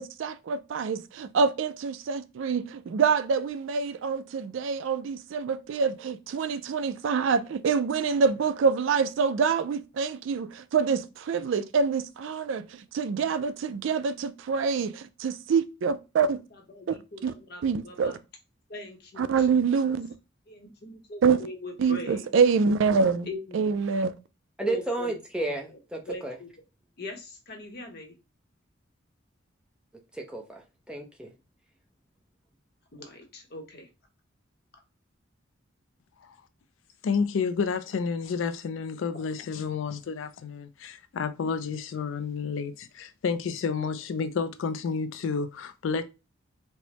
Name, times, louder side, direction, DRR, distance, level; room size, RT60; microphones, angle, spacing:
voice 1, 0.0-16.4 16.9-17.0 17.2-17.3 17.6-18.1 19.2-20.1 21.2-21.4 21.8-23.3 23.5-24.1, right 5 dB, 70° right, 0.3 m, -26 dB
voice 2, 16.7-18.2 18.7-19.9 20.5-22.3 23.3-23.8 24.6-25.2 25.5-25.8 26.1-26.5 27.0-28.2 32.9-33.9, left 1 dB, 50° left, 0.8 m, -41 dB
voice 3, 24.6-26.3 30.1-30.6 30.9-31.3, right 2 dB, 5° right, 0.5 m, -32 dB
voice 4, 37.0-46.0, left 5 dB, 70° left, 0.4 m, -30 dB
4.4 x 2.1 x 2.9 m
head